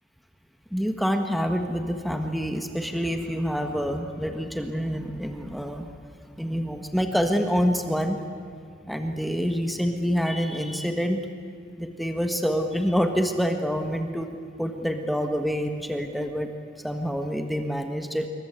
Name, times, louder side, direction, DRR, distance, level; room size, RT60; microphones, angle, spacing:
voice 1, 0.7-6.0 6.3-8.2 8.9-11.2 11.8-16.5 16.8-18.3, equal, ahead, 5 dB, 1.5 m, -27 dB
27.5 x 23.0 x 8.2 m, 2.2 s
head